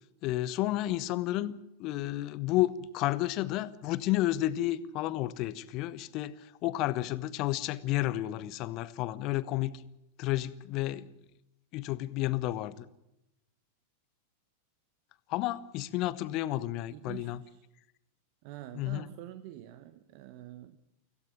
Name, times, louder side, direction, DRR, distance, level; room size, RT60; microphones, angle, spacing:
voice 1, 0.2-9.7 10.2-11.1 11.7-12.8 15.3-17.4 18.7-19.1, left 15 dB, 40° left, 16 dB, 1.2 m, -31 dB
voice 2, 16.9-17.7 18.4-20.8, right 14 dB, 45° right, 12 dB, 1.2 m, -46 dB
25.5 x 16.5 x 7.3 m, 0.87 s
figure-of-eight pair, 90°, 0 cm